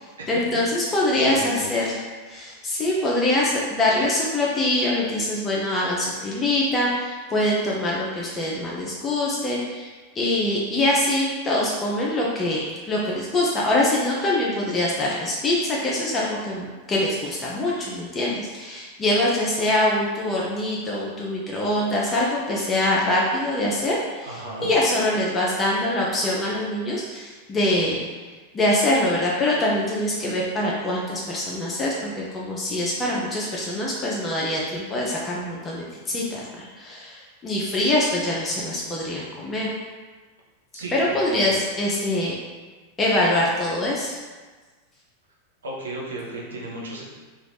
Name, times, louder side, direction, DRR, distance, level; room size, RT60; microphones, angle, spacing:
voice 1, 0.0-2.0 2.3-28.0 28.5-39.7 40.9-42.4 43.0-44.2, left 1 dB, 20° left, -4 dB, 0.5 m, -24 dB
voice 2, 0.8-1.8 24.2-24.7 40.7-41.6 45.6-47.0, right 2 dB, 65° right, -3 dB, 0.7 m, -35 dB
2.9 x 2.4 x 3.3 m, 1.4 s
figure-of-eight pair, 90°, 0 cm